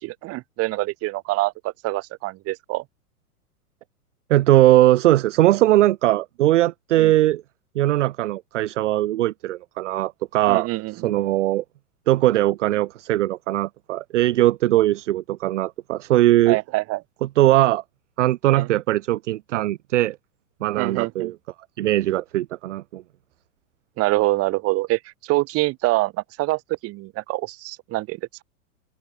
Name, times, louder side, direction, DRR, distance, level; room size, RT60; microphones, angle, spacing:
voice 1, 0.0-2.8 7.0-7.1 10.5-11.1 16.5-17.0 18.5-18.7 20.8-21.3 24.0-26.1 26.4-28.4, right 20 dB, 30° right, 2.0 m, -25 dB
voice 2, 4.3-7.4 7.8-10.7 10.9-11.6 12.1-16.6 17.4-17.8 18.2-20.2 20.6-21.3 21.8-23.0, right 15 dB, 55° right, 0.5 m, -20 dB
open air
figure-of-eight pair, 100°, 44 cm